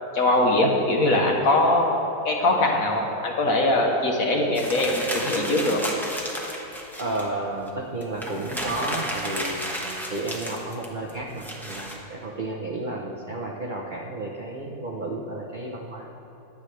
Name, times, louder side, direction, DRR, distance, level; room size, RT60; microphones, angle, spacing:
voice 1, 0.1-5.8, left 1 dB, 50° left, 0 dB, 1.4 m, -22 dB
sound 1, 4.5-7.3 7.7-7.8 8.0-11.9, equal, ahead, 0.9 m, -32 dB
voice 2, 7.0-16.1, right 2 dB, 60° right, -2 dB, 0.5 m, -32 dB
21.5 x 8.2 x 3.3 m, 3.0 s
omnidirectional pair, 2.2 m